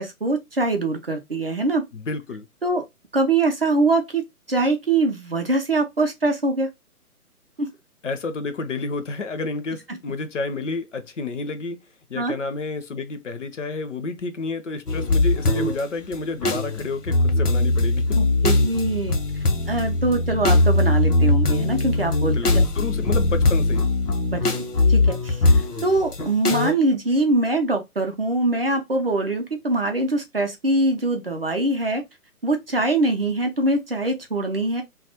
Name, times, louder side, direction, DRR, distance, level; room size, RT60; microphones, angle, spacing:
voice 1, 0.0-1.8 2.6-2.8 3.1-6.7 7.6-7.7 12.1-12.4 18.1-19.2 19.7-22.4 24.3-24.6 24.9-32.0 32.4-34.8, right 2 dB, 45° right, 0.4 m, -23 dB
voice 2, 1.9-2.5 8.0-11.8 12.1-18.2 22.3-23.9, left 3 dB, 55° left, 0.5 m, -30 dB
sound 1, 14.9-15.8 16.1-26.7, left 2 dB, 90° left, 0.8 m, -20 dB
2.2 x 2.0 x 2.7 m
figure-of-eight pair, 140°, 45 cm